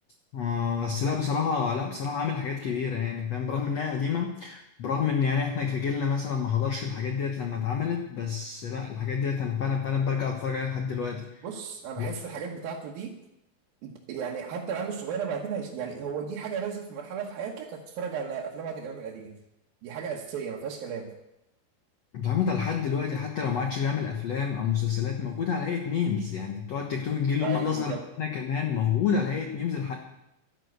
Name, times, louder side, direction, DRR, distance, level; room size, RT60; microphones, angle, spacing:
voice 1, 0.3-11.4 12.0-12.1 22.1-29.9, left 6 dB, 75° left, 3 dB, 1.5 m, -28 dB
voice 2, 11.4-13.2 13.8-19.4 19.8-21.1 27.4-28.0, right 6 dB, 65° right, -1 dB, 2.8 m, -34 dB
12.0 x 11.5 x 8.0 m, 0.86 s
omnidirectional pair, 5.0 m